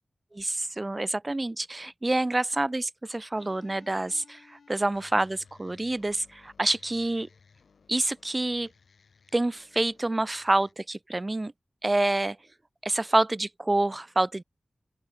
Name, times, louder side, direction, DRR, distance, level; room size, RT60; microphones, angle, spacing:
voice 1, 0.3-7.3 7.9-8.7 9.3-11.5 11.8-12.4 12.8-14.4, right 2 dB, 30° right, 2.0 m, -27 dB
sound 1, 3.3-10.7, left 5 dB, 85° left, 4.6 m, -59 dB
open air
wide cardioid pair, 70°, 0 cm